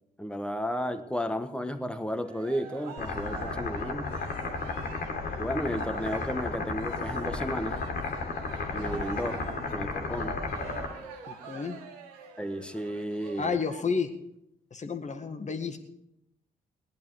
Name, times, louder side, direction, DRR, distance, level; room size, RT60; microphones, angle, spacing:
voice 1, 0.2-4.2 5.4-7.8 8.7-10.4 12.4-13.6, equal, 5° left, 9 dB, 1.3 m, -33 dB
Cheering, 2.1-13.8, right 7 dB, 75° right, 1.1 m, -45 dB
sound 1, 3.0-10.9, left 4 dB, 55° left, 2.3 m, -33 dB
voice 2, 11.3-11.8 13.4-14.1 14.7-15.8, left 5 dB, 40° left, 5 dB, 1.7 m, -31 dB
18.5 x 10.5 x 4.8 m, 0.82 s
figure-of-eight pair, 40°, 19 cm